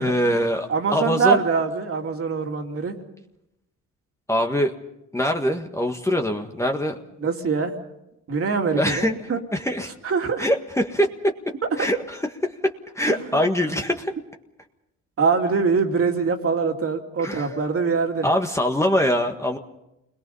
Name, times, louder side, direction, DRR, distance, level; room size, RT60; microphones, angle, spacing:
voice 1, 0.0-1.4 4.3-4.7 5.1-7.0 8.7-9.2 9.5-9.9 10.4-11.3 11.8-14.1 17.2-17.6 18.2-19.6, equal, 10° left, 3 dB, 1.6 m, -23 dB
voice 2, 0.7-3.0 7.2-7.7 8.3-9.4 10.0-10.4 15.2-18.3, right 5 dB, 50° right, 3 dB, 2.9 m, -23 dB
28.5 x 21.5 x 5.6 m, 0.88 s
cardioid pair, 90°, 30 cm